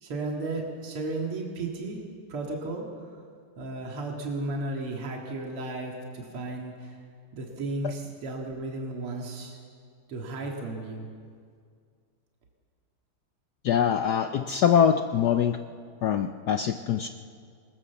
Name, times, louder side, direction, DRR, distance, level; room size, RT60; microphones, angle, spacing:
voice 1, 0.0-2.0 2.3-2.9 3.6-6.9 7.4-9.6 10.1-11.1, right 2 dB, 80° right, 0 dB, 2.9 m, -34 dB
voice 2, 13.6-15.6 16.0-17.1, left 8 dB, 75° left, 8 dB, 0.9 m, -23 dB
20.0 x 20.0 x 7.0 m, 2.2 s
omnidirectional pair, 2.4 m